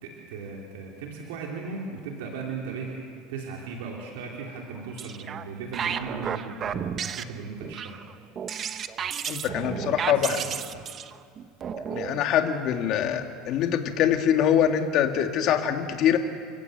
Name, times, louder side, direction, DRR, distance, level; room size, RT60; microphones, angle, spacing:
voice 1, 0.0-2.9 3.3-8.0 9.4-10.8, right 4 dB, 85° right, -1 dB, 3.5 m, -37 dB
sound 1, 4.8-5.5 5.7-12.2, right 8 dB, 35° right, 0.9 m, -33 dB
voice 2, 9.2-10.4 11.9-16.2, left 9 dB, 50° left, 5 dB, 2.0 m, -24 dB
29.5 x 16.0 x 8.0 m, 2.2 s
supercardioid pair, 130°, 0 cm